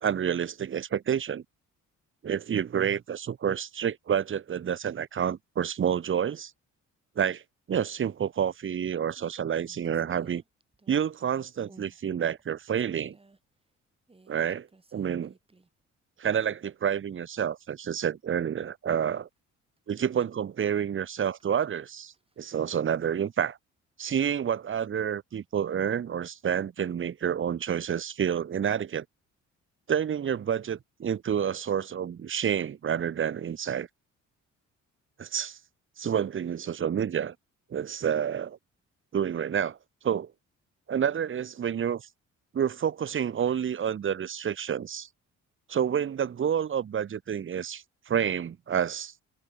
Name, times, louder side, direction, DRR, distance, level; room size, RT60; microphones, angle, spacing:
voice 1, 0.0-1.4 2.2-6.5 7.2-7.4 7.7-10.4 10.9-13.2 14.3-15.3 16.2-19.3 19.9-23.6 24.0-29.0 29.9-33.9 35.2-35.6 36.0-37.3 37.7-38.6 39.1-39.8 40.0-40.3 40.9-42.1 42.5-45.1 45.7-49.1, right 8 dB, 40° right, 1.1 m, -29 dB
sound 1, 8.3-8.7 9.1-11.2 11.7-12.0 12.4-13.4 14.1-15.9 16.2-16.3 19.8-20.4 21.3-22.9, right 3 dB, 20° right, 4.1 m, -59 dB
cardioid pair, 90°, 30 cm